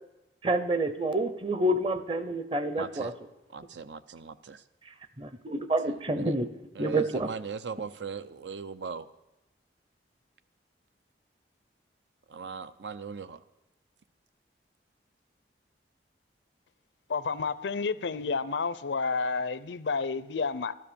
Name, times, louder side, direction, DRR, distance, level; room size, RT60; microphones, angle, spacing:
voice 1, 0.4-3.1 5.2-6.5 6.8-7.3, right 1 dB, 30° right, 0.8 m, -28 dB
voice 2, 2.7-3.1 3.5-4.6 5.8-6.4 6.7-9.1 12.3-13.4, right 5 dB, 80° right, 0.7 m, -39 dB
voice 3, 17.1-20.7, left 4 dB, 80° left, 0.6 m, -30 dB
12.5 x 12.5 x 7.0 m
head